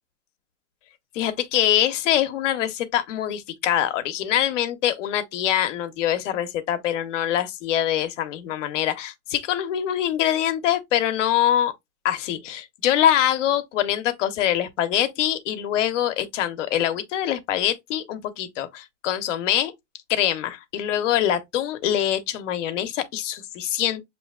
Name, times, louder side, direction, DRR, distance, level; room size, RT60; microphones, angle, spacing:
voice 1, 1.1-11.7 12.0-19.7 20.1-24.0, left 11 dB, 80° left, 0.9 m, -24 dB
6.3 x 2.8 x 2.3 m
supercardioid pair, 130°, 36 cm